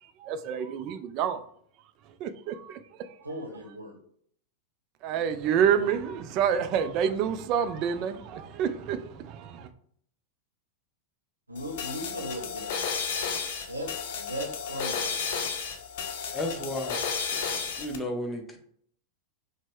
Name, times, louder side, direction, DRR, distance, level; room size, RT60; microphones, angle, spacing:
voice 1, 0.0-1.4 2.2-3.1 5.0-9.7, right 8 dB, 40° right, 10 dB, 0.4 m, -28 dB
voice 2, 3.2-4.0 11.5-12.9 13.7-15.2, equal, 85° right, 0 dB, 0.8 m, -37 dB
sound 1, 11.6-18.0, left 6 dB, 50° left, 0.6 m, -33 dB
voice 3, 16.3-17.0 17.3-17.4 17.8-18.6, left 1 dB, 10° left, 2 dB, 0.8 m, -33 dB
5.1 x 2.1 x 3.4 m, 0.63 s
figure-of-eight pair, 90°, 0 cm